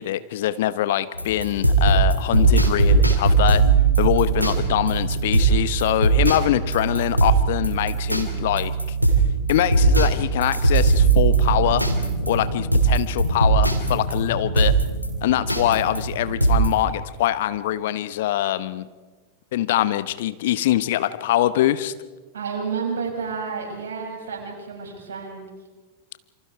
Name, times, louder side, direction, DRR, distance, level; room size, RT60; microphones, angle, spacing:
voice 1, 0.0-3.6 4.0-8.7 9.5-11.8 12.3-14.7 15.2-18.9 19.5-21.9, left 13 dB, 55° left, 14 dB, 1.1 m, -23 dB
sound 1, 1.1-16.8, right 4 dB, 90° right, 2.8 m, -20 dB
voice 2, 22.3-25.5, right 5 dB, 65° right, 0 dB, 6.9 m, -30 dB
28.0 x 26.0 x 4.8 m, 1.3 s
figure-of-eight pair, 90°, 0 cm